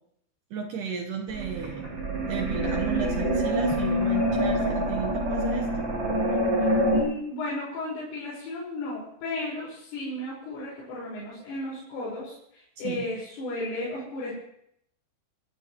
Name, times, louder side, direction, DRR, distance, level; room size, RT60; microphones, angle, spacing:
voice 1, 0.5-1.9 2.2-5.9 12.8-13.0, right 6 dB, 85° right, 2 dB, 1.8 m, -34 dB
sound 1, 1.3-7.0, equal, 30° right, 7.2 m, -26 dB
voice 2, 6.9-14.3, left 2 dB, 75° left, -6 dB, 7.7 m, -34 dB
26.0 x 14.5 x 3.1 m, 0.72 s
omnidirectional pair, 5.7 m